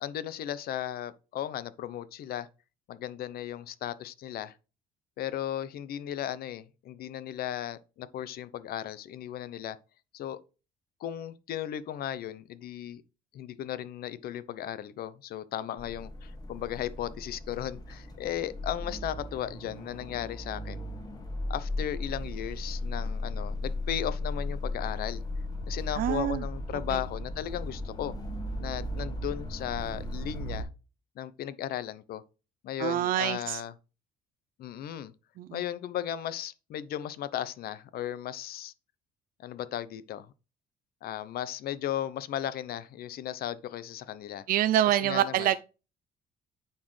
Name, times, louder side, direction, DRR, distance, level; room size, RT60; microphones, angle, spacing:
voice 1, 0.0-2.5 2.9-4.5 5.2-9.8 10.1-10.4 11.0-13.0 13.3-20.8 21.5-25.2 25.7-28.1 28.6-30.7 31.2-32.2 32.6-33.7 34.6-35.1 35.5-38.7 39.4-40.3 41.0-44.4 45.0-45.5, left 11 dB, 65° left, 0.7 m, -36 dB
sound 1, 15.8-30.6, left 1 dB, 25° left, 1.9 m, -36 dB
voice 2, 25.9-26.4 26.9-27.0 32.8-33.6 35.4-35.6 44.5-45.6, right 12 dB, 60° right, 0.4 m, -26 dB
9.2 x 4.4 x 3.2 m
cardioid pair, 110°, 17 cm